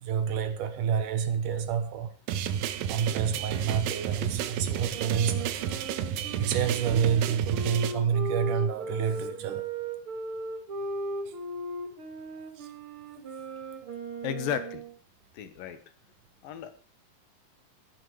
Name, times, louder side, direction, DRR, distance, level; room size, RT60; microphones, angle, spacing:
voice 1, 0.0-2.1 2.9-5.5 6.4-9.7 12.6-12.7, right 7 dB, 70° right, 2.6 m, -28 dB
sound 1, 2.3-7.9, right 9 dB, 90° right, 2.7 m, -31 dB
voice 2, 4.2-4.7 14.2-14.8 15.3-15.8 16.4-16.7, left 9 dB, 85° left, 3.0 m, -35 dB
Wind instrument woodwind instrument, 4.9-15.0, right 2 dB, 45° right, 2.7 m, -37 dB
14.5 x 10.5 x 4.8 m
omnidirectional pair, 3.9 m